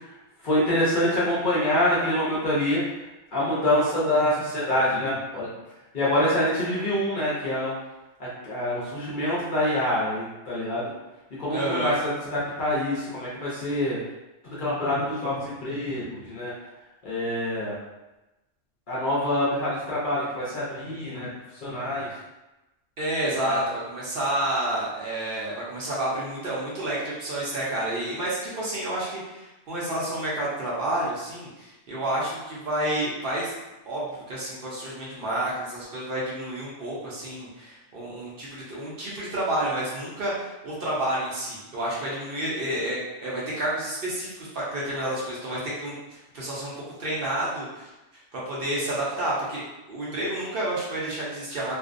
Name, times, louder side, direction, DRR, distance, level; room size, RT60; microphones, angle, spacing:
voice 1, 0.4-2.8 3.3-5.5 5.9-7.7 8.2-10.8 11.4-14.0 14.6-16.5 17.0-17.8 18.9-21.3 21.6-22.1 23.4-23.6, left 1 dB, 50° left, -7 dB, 0.7 m, -25 dB
voice 2, 11.5-11.9 23.0-33.5 33.9-46.7 47.0-47.9 48.3-49.6 49.9-51.7, right 1 dB, 55° right, -7 dB, 0.7 m, -30 dB
2.5 x 2.1 x 2.4 m, 1.0 s
omnidirectional pair, 1.2 m